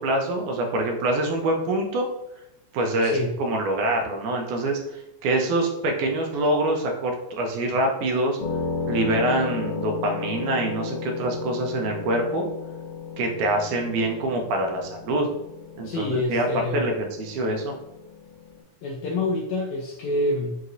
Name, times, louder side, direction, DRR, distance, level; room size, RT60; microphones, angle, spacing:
voice 1, 0.0-2.1 2.7-8.4 8.9-12.5 13.2-15.3 15.8-16.5 16.7-17.7, right 1 dB, 80° right, 2 dB, 2.0 m, -25 dB
sound 1, 8.4-18.6, left 4 dB, 60° left, 1.5 m, -34 dB
voice 2, 15.8-16.9 18.8-20.6, left 2 dB, 80° left, -1 dB, 1.6 m, -27 dB
5.5 x 3.0 x 2.5 m, 0.87 s
omnidirectional pair, 3.7 m